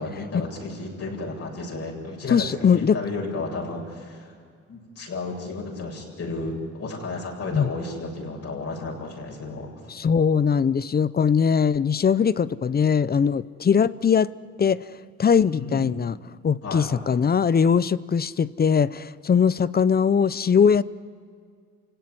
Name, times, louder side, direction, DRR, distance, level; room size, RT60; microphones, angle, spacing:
voice 1, 0.0-4.3 4.7-9.9 15.5-15.9 16.6-16.9, left 3 dB, 55° left, 0 dB, 7.8 m, -33 dB
voice 2, 2.3-3.0 7.5-7.7 9.9-14.3 14.6-14.8 15.2-16.1 16.4-20.8, left 6 dB, 30° left, 18 dB, 0.6 m, -21 dB
28.5 x 17.5 x 9.8 m, 2.1 s
cardioid pair, 90°, 30 cm